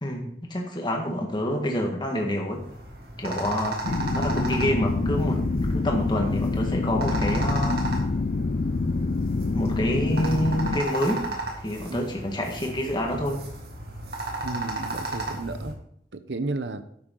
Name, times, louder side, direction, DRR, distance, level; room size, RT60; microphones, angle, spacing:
voice 1, 0.0-2.6 3.2-3.8 4.1-7.8 9.5-11.3 11.6-13.4, equal, 25° left, 1 dB, 1.8 m, -27 dB
sound 1, 2.5-15.7, right 2 dB, 60° right, 2.3 m, -34 dB
sound 2, 3.8-10.8, left 3 dB, 45° left, 0.5 m, -26 dB
voice 2, 14.4-15.8 16.1-16.8, right 2 dB, 90° right, 11 dB, 0.9 m, -33 dB
11.0 x 8.5 x 4.0 m, 0.70 s
head